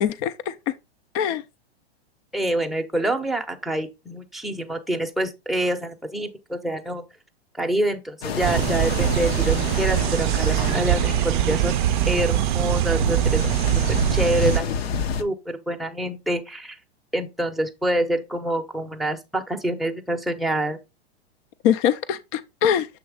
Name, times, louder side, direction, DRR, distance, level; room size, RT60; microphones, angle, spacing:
voice 1, 0.0-0.7 1.1-1.4 21.6-22.9, left 9 dB, 35° left, 0.4 m, -23 dB
voice 2, 2.3-7.0 7.6-11.8 12.1-13.5 14.1-14.8 15.2-16.8 17.1-20.8, right 1 dB, ahead, 0.7 m, -26 dB
sound 1, 8.2-15.2, left 6 dB, 75° left, 1.1 m, -30 dB
sound 2, 8.4-14.6, right 14 dB, 50° right, 0.5 m, -22 dB
7.1 x 3.1 x 4.9 m
hypercardioid pair, 135°, 31 cm